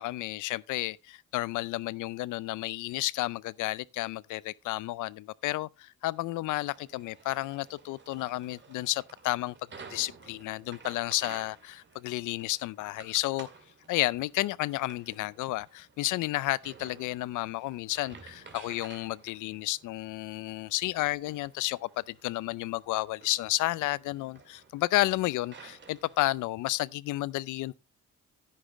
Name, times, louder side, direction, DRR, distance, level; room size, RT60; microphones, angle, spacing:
voice 1, 0.0-9.5 9.9-13.5 13.9-27.8, left 17 dB, 85° left, 0.5 m, -32 dB
sound 1, 6.6-26.4, right 4 dB, 40° right, 2.4 m, -53 dB
10.5 x 10.0 x 3.1 m
cardioid pair, 90°, 30 cm